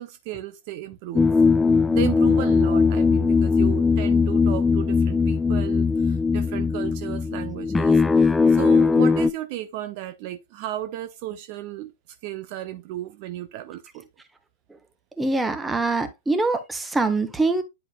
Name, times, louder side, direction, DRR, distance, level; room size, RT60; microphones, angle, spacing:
voice 1, 0.0-1.5 1.9-11.9 12.2-14.1, right 13 dB, 40° right, 0.7 m, -34 dB
sound 1, 1.1-9.3, left 4 dB, 10° left, 0.3 m, -19 dB
voice 2, 15.2-17.6, right 3 dB, 5° right, 1.2 m, -24 dB
10.0 x 5.0 x 2.3 m
figure-of-eight pair, 105°, 0 cm